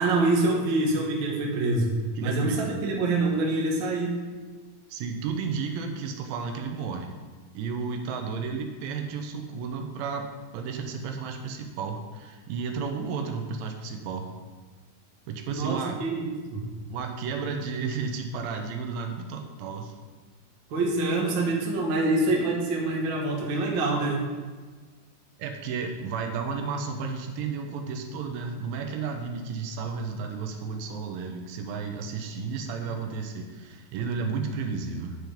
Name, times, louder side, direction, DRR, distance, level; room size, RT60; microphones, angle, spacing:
voice 1, 0.0-4.1 15.5-16.6 20.7-24.2, right 2 dB, 60° right, -1 dB, 1.2 m, -26 dB
voice 2, 2.2-2.8 4.9-7.2 7.5-14.3 15.3-16.0 16.9-19.9 25.4-35.2, right 5 dB, 85° right, 4 dB, 2.5 m, -33 dB
9.4 x 4.6 x 5.1 m, 1.4 s
omnidirectional pair, 4.1 m